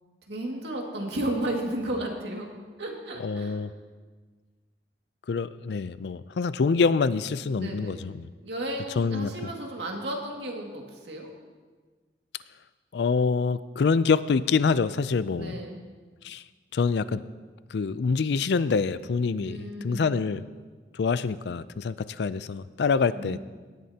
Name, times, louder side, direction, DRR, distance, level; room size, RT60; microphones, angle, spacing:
voice 1, 0.3-2.5 2.8-3.6 7.6-8.1 8.4-11.3 15.4-15.8 19.4-20.2 23.1-23.4, right 1 dB, 75° right, 0 dB, 2.1 m, -33 dB
voice 2, 3.2-3.7 5.3-8.3 9.0-9.3 12.9-15.5 16.2-16.4 16.7-17.2 17.7-20.4 20.9-23.4, left 5 dB, 75° left, 15 dB, 0.4 m, -26 dB
17.5 x 11.0 x 2.8 m, 1.4 s
head